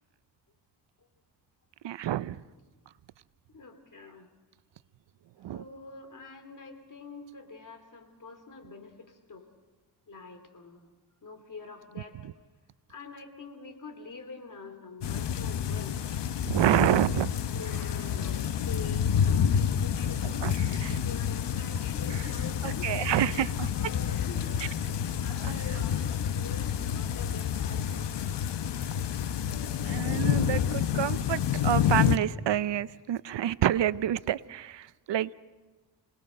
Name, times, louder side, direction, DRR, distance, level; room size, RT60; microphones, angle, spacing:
voice 1, 1.8-2.4 5.4-5.6 16.5-17.3 20.4-20.5 20.8-21.0 22.6-23.7 25.4-25.6 29.9-35.3, right 12 dB, 80° right, 17 dB, 0.6 m, -28 dB
voice 2, 3.5-4.3 5.5-9.5 10.1-10.9 11.2-12.2 12.9-16.2 17.1-17.2 17.5-28.2 29.5-30.1, left 4 dB, 45° left, 5 dB, 3.2 m, -46 dB
sound 1, 15.0-32.2, left 8 dB, 75° left, 0.9 m, -29 dB
27.5 x 19.5 x 6.5 m, 1.3 s
wide cardioid pair, 110°, 43 cm